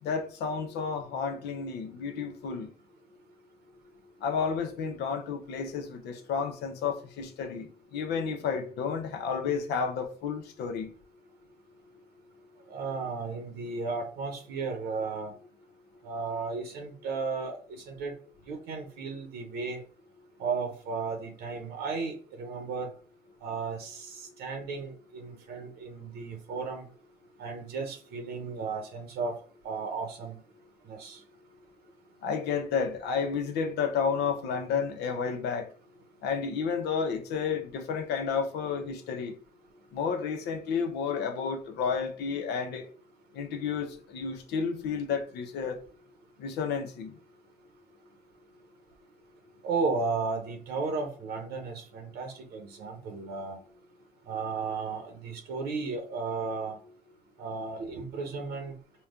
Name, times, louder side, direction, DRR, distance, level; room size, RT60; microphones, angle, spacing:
voice 1, 0.0-2.7 4.2-10.9 32.2-35.7 36.2-39.3 39.9-42.9 43.3-45.8 46.4-47.2, left 6 dB, 75° left, 0.8 m, -31 dB
voice 2, 12.7-15.3 16.0-18.1 18.5-19.8 20.4-22.9 23.4-26.9 27.4-29.4 29.6-30.4 30.9-31.2 49.6-53.6 54.2-56.8 57.4-58.8, right 4 dB, 75° right, 0.9 m, -34 dB
4.2 x 2.3 x 3.6 m
cardioid pair, 110°, 17 cm